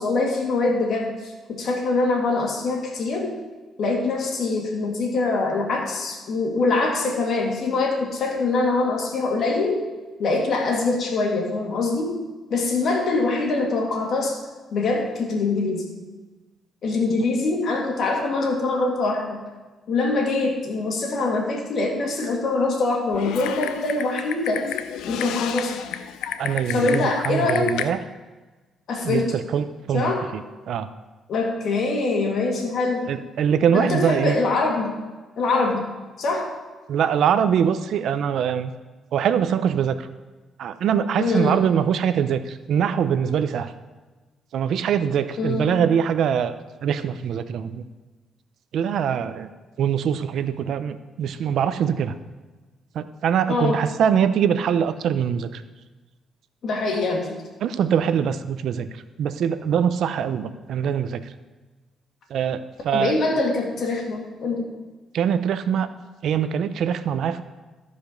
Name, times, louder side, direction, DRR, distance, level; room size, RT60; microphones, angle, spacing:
voice 1, 0.0-3.4 3.8-9.9 10.2-12.1 12.5-14.4 14.7-15.9 16.8-19.4 19.9-24.7 25.1-25.8 26.7-27.7 28.9-29.3 29.9-30.2 31.3-33.0 33.7-35.0 35.4-35.9 36.2-36.5 41.2-41.6 45.4-45.7 53.5-53.8 56.6-57.4 62.9-64.7, left 3 dB, 60° left, 0 dB, 2.3 m, -23 dB
Typing, 23.1-27.9, left 10 dB, 90° left, 0.5 m, -31 dB
voice 2, 26.4-28.0 29.0-30.9 33.1-34.4 36.9-38.7 39.1-40.1 40.6-43.7 44.5-46.5 46.8-47.9 48.7-49.5 49.8-52.1 52.9-55.6 57.6-61.3 62.3-63.1 65.1-65.9 66.2-67.4, right 8 dB, 70° right, 12 dB, 0.5 m, -23 dB
14.0 x 5.1 x 5.2 m, 1.3 s
cardioid pair, 90°, 0 cm